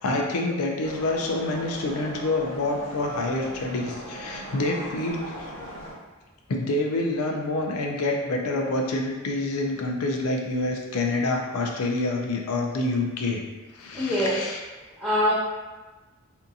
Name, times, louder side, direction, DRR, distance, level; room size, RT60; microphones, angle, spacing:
voice 1, 0.0-5.5 6.5-13.4 13.7-14.6, left 2 dB, 80° left, 1 dB, 0.4 m, -27 dB
sound 1, 0.8-5.9, equal, 60° left, 0.8 m, -39 dB
voice 2, 13.9-14.5 15.0-15.3, equal, 5° right, -11 dB, 0.4 m, -24 dB
2.7 x 2.5 x 2.3 m, 1.2 s
head